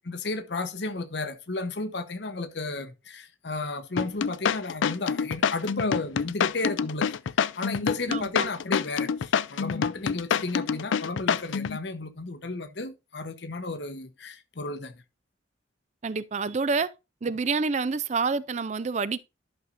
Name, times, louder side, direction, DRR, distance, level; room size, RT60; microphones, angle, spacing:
voice 1, 0.0-7.2 7.6-15.0, left 3 dB, 65° left, 0.9 m, -33 dB
Remix Congas, 4.0-11.8, left 7 dB, 85° left, 0.4 m, -26 dB
voice 2, 8.1-8.5 16.0-16.9 17.2-19.2, right 4 dB, 35° right, 0.4 m, -28 dB
11.0 x 6.5 x 2.5 m
head